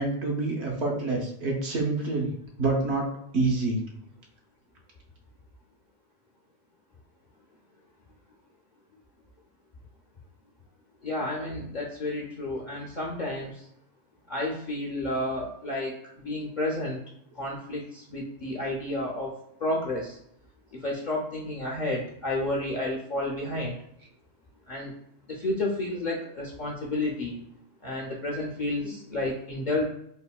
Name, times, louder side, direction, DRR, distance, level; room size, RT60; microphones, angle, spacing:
voice 1, 0.0-2.3 2.6-3.1 3.3-3.8, right 3 dB, 70° right, 0 dB, 0.9 m, -27 dB
voice 2, 11.0-13.6 14.3-17.0 17.4-19.3 19.6-20.2 20.8-23.8 24.7-24.9 25.3-27.4 27.8-29.8, left 1 dB, 60° left, -3 dB, 0.5 m, -31 dB
3.5 x 2.1 x 2.3 m, 0.74 s
omnidirectional pair, 1.2 m